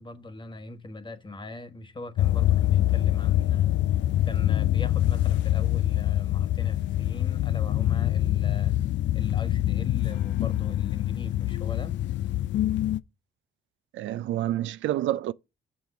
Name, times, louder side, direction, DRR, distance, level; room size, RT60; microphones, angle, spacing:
voice 1, 0.0-8.8 9.1-12.0, left 2 dB, 25° left, 1.2 m, -41 dB
sound 1, 2.2-13.0, left 13 dB, 65° left, 0.4 m, -25 dB
voice 2, 13.9-15.3, right 13 dB, 75° right, 0.4 m, -28 dB
6.8 x 6.1 x 3.6 m
cardioid pair, 90°, 20 cm